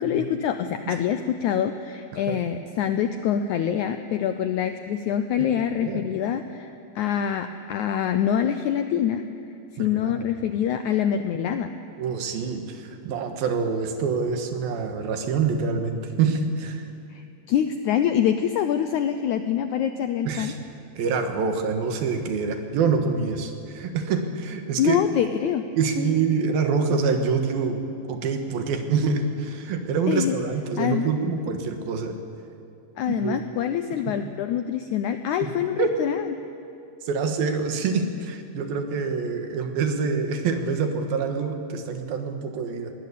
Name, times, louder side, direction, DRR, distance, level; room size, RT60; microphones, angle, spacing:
voice 1, 0.0-9.2 9.7-11.7 17.1-20.5 24.8-25.6 30.1-30.4 30.8-31.1 33.0-36.3, left 9 dB, 80° left, 9 dB, 1.7 m, -25 dB
voice 2, 9.8-10.3 12.0-16.8 20.3-20.6 21.0-25.0 25.8-27.8 28.1-32.1 33.1-33.4 34.1-34.2 35.4-35.5 35.8-36.0 37.0-42.9, right 5 dB, 75° right, 6 dB, 3.3 m, -26 dB
22.0 x 18.5 x 8.5 m, 2.7 s
omnidirectional pair, 4.3 m